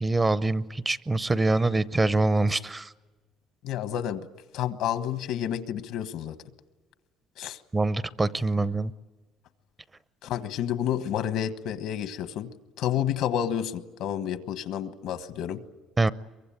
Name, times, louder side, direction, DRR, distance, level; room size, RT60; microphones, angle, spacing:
voice 1, 0.0-2.9 7.7-8.9 16.0-16.1, right 2 dB, 20° right, 16 dB, 0.7 m, -24 dB
voice 2, 3.6-4.3 4.5-6.4 7.4-7.6 10.2-12.5 12.8-15.6, left 10 dB, 80° left, 11 dB, 1.3 m, -30 dB
23.5 x 23.0 x 8.8 m, 1.3 s
cardioid pair, 110°, 0 cm